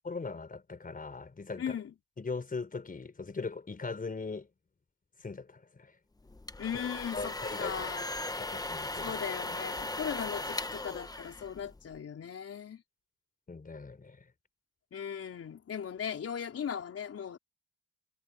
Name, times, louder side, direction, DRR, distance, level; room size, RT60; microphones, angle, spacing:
voice 1, 0.0-1.8 2.2-4.5 5.2-5.9 7.1-7.8 8.4-9.2 9.4-9.6 13.5-14.3, left 4 dB, 30° left, 4.7 m, -40 dB
voice 2, 1.6-1.9 6.6-8.1 9.0-12.8 14.9-17.4, left 8 dB, 50° left, 4.3 m, -38 dB
sound 1, 6.3-12.0, left 2 dB, 10° left, 1.1 m, -38 dB
cardioid pair, 90°, 30 cm